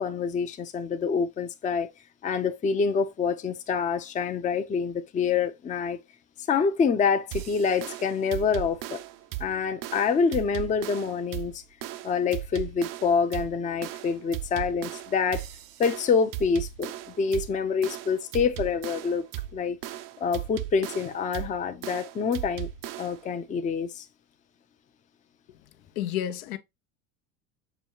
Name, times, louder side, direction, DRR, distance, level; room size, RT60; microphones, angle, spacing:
voice 1, 0.0-1.9 2.2-6.0 6.5-9.0 9.4-11.6 12.0-15.4 15.8-19.3 19.5-19.8 20.2-22.7 23.0-24.0, left 5 dB, 20° left, 0.5 m, -26 dB
sound 1, 7.3-23.3, right 14 dB, 50° right, 0.5 m, -37 dB
voice 2, 26.0-26.6, left 11 dB, 80° left, 0.7 m, -30 dB
6.9 x 2.3 x 2.8 m
supercardioid pair, 100°, 42 cm